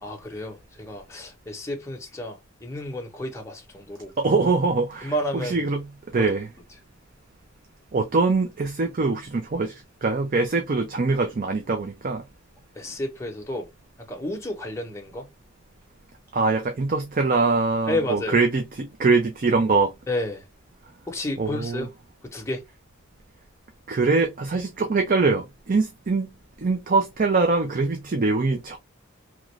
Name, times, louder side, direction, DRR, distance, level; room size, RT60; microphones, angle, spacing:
voice 1, 0.0-4.1 5.0-5.6 6.2-6.3 12.8-13.7 14.1-15.3 17.9-18.4 20.1-20.5 21.1-21.9 22.3-22.6, left 1 dB, 15° left, 0.9 m, -31 dB
voice 2, 4.2-6.5 7.9-12.2 16.3-19.9 21.4-21.9 23.9-26.3 26.6-28.8, right 3 dB, 45° right, 0.5 m, -23 dB
3.0 x 2.4 x 3.1 m
head